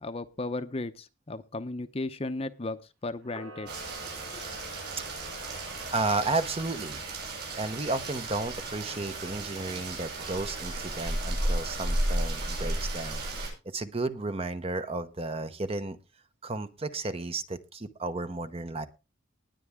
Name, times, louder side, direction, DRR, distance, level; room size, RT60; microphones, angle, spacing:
voice 1, 0.0-3.7 4.3-4.4, left 2 dB, 30° left, 11 dB, 0.7 m, -35 dB
Camera, 3.2-6.5 10.1-10.8 11.3-13.2, equal, 80° right, 5.0 m, -48 dB
Rain, 3.7-13.5, right 1 dB, 55° right, 7.8 m, -34 dB
voice 2, 5.2-5.6 5.9-7.0 7.6-16.0 16.4-18.9, right 3 dB, 30° right, 11 dB, 0.9 m, -33 dB
19.5 x 8.4 x 3.6 m, 0.30 s
head